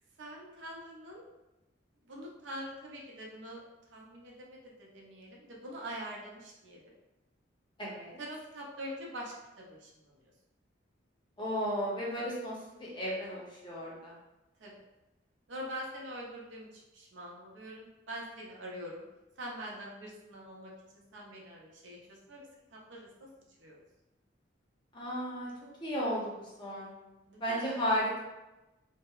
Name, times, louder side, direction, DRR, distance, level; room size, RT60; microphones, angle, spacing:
voice 1, 0.2-1.2 2.1-3.6 3.9-6.9 8.2-9.9 14.6-14.7 15.5-16.7 16.9-19.0 19.4-23.1 23.6-23.8 27.3-27.7, equal, 70° right, -2 dB, 0.6 m, -44 dB
voice 2, 7.8-8.2 11.4-14.1 24.9-25.5 25.8-26.3 26.6-26.9 27.4-28.2, equal, 25° left, -5 dB, 0.5 m, -34 dB
2.7 x 2.0 x 2.3 m, 1.0 s
head